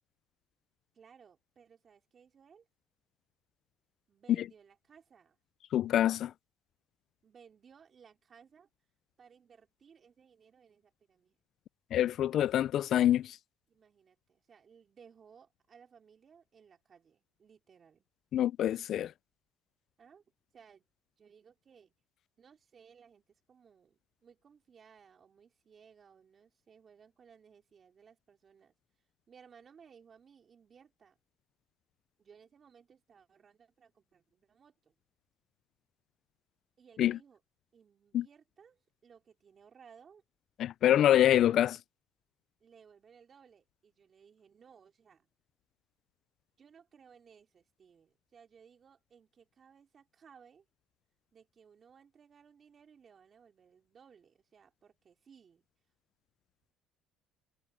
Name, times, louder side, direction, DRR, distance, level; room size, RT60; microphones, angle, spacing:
voice 1, 0.9-2.7 4.1-5.4 7.2-8.7 9.2-11.4 13.7-18.0 20.0-20.2 20.5-20.8 21.2-21.9 22.4-28.8 29.3-31.2 32.2-34.9 36.8-37.4 37.7-40.2 40.9-41.6 42.6-45.3 46.6-50.7 51.3-55.7, right 7 dB, 35° right, 4.4 m, -60 dB
voice 2, 5.7-6.3 11.9-13.4 18.3-19.1 37.0-37.2 38.1-38.2 40.6-41.8, left 11 dB, 50° left, 0.3 m, -26 dB
cardioid pair, 130°, 0 cm